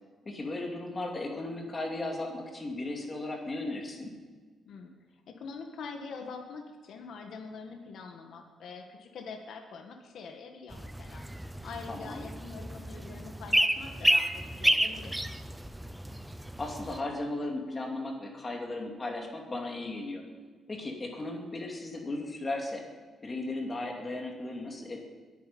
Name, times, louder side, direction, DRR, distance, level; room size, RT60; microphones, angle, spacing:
voice 1, 0.3-4.2 11.9-12.2 16.6-20.2 20.7-22.8 23.2-25.0, left 2 dB, 20° left, 1 dB, 2.5 m, -36 dB
voice 2, 5.3-11.2 11.6-15.2, left 5 dB, 60° left, 3 dB, 1.7 m, -44 dB
sound 1, 10.7-17.0, right 1 dB, 5° right, 0.6 m, -30 dB
21.5 x 9.5 x 5.5 m, 1.5 s
cardioid pair, 160°, 0 cm